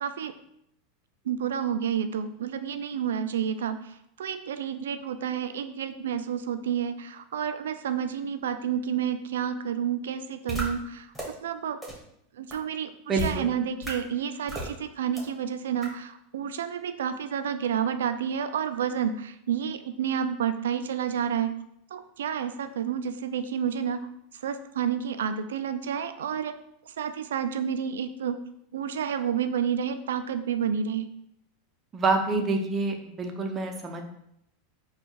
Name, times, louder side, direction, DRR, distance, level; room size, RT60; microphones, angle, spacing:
voice 1, 0.0-0.3 1.3-11.1 11.4-11.8 12.3-21.6 21.9-26.6 26.9-28.4 28.7-31.1, right 8 dB, 85° right, 10 dB, 0.3 m, -30 dB
sound 1, 10.5-10.6 11.1-11.2 11.8-11.9 12.5-12.6 13.2-13.3 13.8-13.9 14.5-14.7 15.2-15.3 15.8-15.9, right 3 dB, 5° right, 1.5 m, -32 dB
voice 2, 13.1-13.5 31.9-34.0, right 3 dB, 25° right, 4 dB, 0.6 m, -27 dB
4.3 x 2.4 x 4.6 m, 0.77 s
hypercardioid pair, 110°, 0 cm